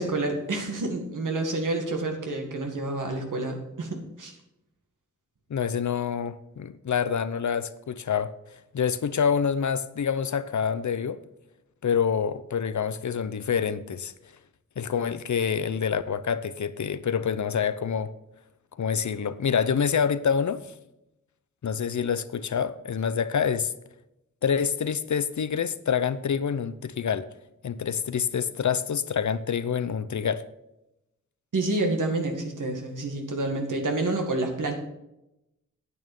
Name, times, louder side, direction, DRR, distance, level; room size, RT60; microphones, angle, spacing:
voice 1, 0.0-4.3 31.5-34.7, right 2 dB, 90° right, 2.1 m, -28 dB
voice 2, 5.5-8.3 8.7-11.2 11.8-14.1 14.8-18.1 18.8-20.6 21.6-23.7 24.4-27.3 27.6-30.4, left 7 dB, 70° left, 0.7 m, -27 dB
9.4 x 8.8 x 5.4 m
wide cardioid pair, 70°, 30 cm